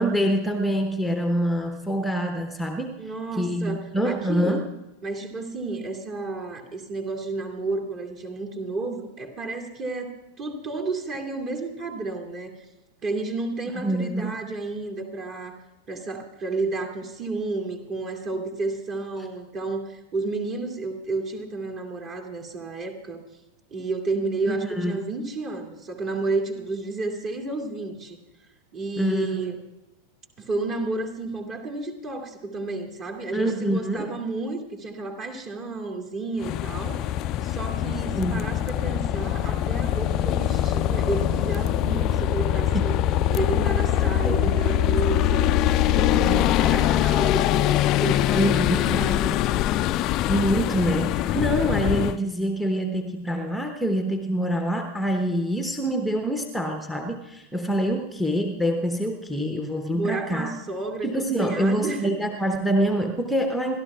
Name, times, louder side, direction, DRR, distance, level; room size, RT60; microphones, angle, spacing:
voice 1, 0.0-3.0 3.4-4.6 13.7-14.4 24.5-25.0 29.0-29.5 33.3-34.2 38.2-38.5 42.7-42.8 44.0-44.6 46.2-47.1 48.3-49.0 50.3-60.5 61.0-63.8, right 1 dB, ahead, 6 dB, 0.9 m, -26 dB
voice 2, 3.0-4.7 5.0-12.5 13.0-15.6 15.9-23.2 23.7-28.2 28.7-29.6 30.4-37.2 37.4-43.0 43.3-45.7 45.9-49.5 59.9-62.1, right 3 dB, 35° right, 1 dB, 2.5 m, -31 dB
sound 1, 36.4-52.2, left 12 dB, 35° left, 0.4 m, -23 dB
29.0 x 12.5 x 2.4 m, 1.0 s
figure-of-eight pair, 90°, 0 cm